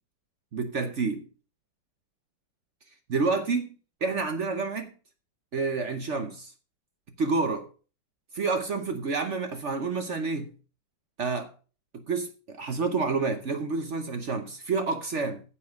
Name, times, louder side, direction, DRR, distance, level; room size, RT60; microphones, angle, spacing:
voice 1, 0.5-1.3 3.1-3.7 4.0-4.9 5.5-6.5 7.2-7.7 8.3-10.5 11.2-11.5 11.9-15.4, right 4 dB, 50° right, 0.9 m, -29 dB
9.5 x 7.3 x 5.1 m
omnidirectional pair, 2.1 m